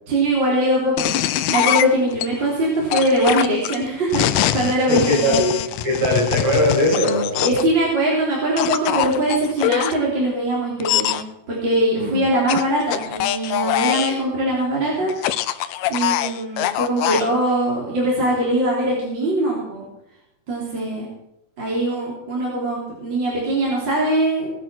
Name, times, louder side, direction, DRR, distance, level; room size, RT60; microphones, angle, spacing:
voice 1, 0.1-1.1 1.5-5.4 7.3-15.1 15.9-19.8 20.5-21.0 21.6-24.5, right 1 dB, 30° right, -5 dB, 3.9 m, -21 dB
sound 1, 1.0-2.3 2.9-7.7 8.6-9.9 10.8-11.2 12.5-14.2 15.1-17.3, left 12 dB, 90° left, 2.6 m, -23 dB
voice 2, 4.9-5.5 5.8-7.3 12.0-12.2, equal, 50° right, -3 dB, 7.9 m, -19 dB
18.5 x 8.9 x 5.9 m, 0.82 s
omnidirectional pair, 4.3 m